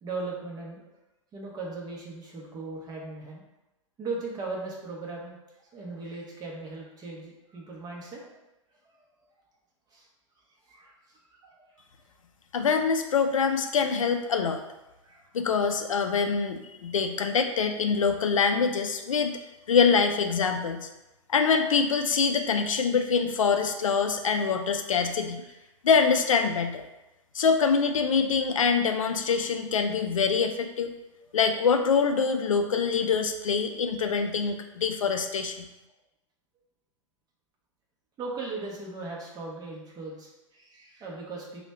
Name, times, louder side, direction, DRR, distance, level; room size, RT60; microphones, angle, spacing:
voice 1, 0.0-0.8 1.3-3.4 4.0-5.4 5.7-8.4 9.9-10.1 10.7-11.5 15.0-15.3 31.2-31.4 38.2-41.6, right 3 dB, 25° right, -3 dB, 1.0 m, -38 dB
voice 2, 12.5-14.6 15.3-19.4 19.7-20.9 21.3-25.4 25.8-26.8 27.3-30.9 31.3-35.7, left 5 dB, 80° left, 6 dB, 0.4 m, -25 dB
3.1 x 2.3 x 4.2 m, 0.97 s
figure-of-eight pair, 105°, 17 cm